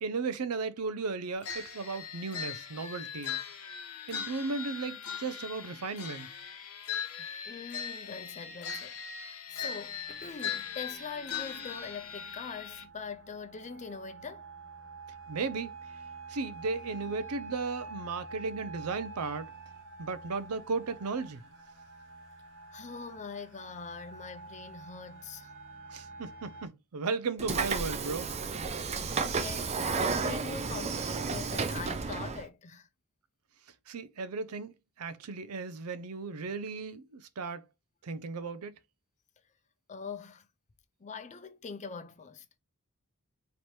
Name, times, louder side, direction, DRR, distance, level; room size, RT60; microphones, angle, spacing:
voice 1, 0.0-3.4 4.1-6.3 15.3-15.7 16.3-19.5 20.0-21.4 25.9-28.3 33.9-37.6 38.0-38.8, right 4 dB, 80° right, 0.5 m, -35 dB
sound 1, 1.4-12.8, left 7 dB, 75° left, 0.9 m, -40 dB
voice 2, 7.4-14.5 22.7-25.5 28.7-32.9 39.9-40.4 41.0-42.6, left 5 dB, 30° left, 0.5 m, -43 dB
sound 2, 9.5-26.7, right 3 dB, 55° right, 0.9 m, -48 dB
Train / Sliding door, 27.4-32.4, right 4 dB, 30° right, 0.5 m, -32 dB
3.2 x 2.9 x 4.3 m
head